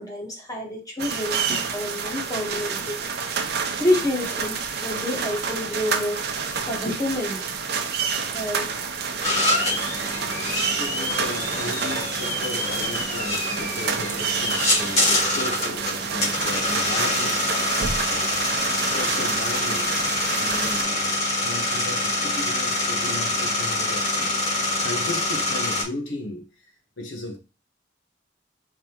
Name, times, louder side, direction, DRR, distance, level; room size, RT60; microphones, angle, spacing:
voice 1, 0.0-3.0 3.8-6.2 6.7-7.5 8.3-8.7, left 1 dB, 20° left, 1.3 m, -28 dB
sound 1, 1.0-20.8, right 5 dB, 60° right, 0.7 m, -29 dB
sound 2, 9.2-25.8, left 1 dB, 35° left, 2.5 m, -25 dB
voice 2, 10.7-20.0 20.4-24.3 24.8-26.5 27.0-27.4, left 2 dB, 90° left, 1.2 m, -35 dB
4.8 x 3.7 x 3.0 m
head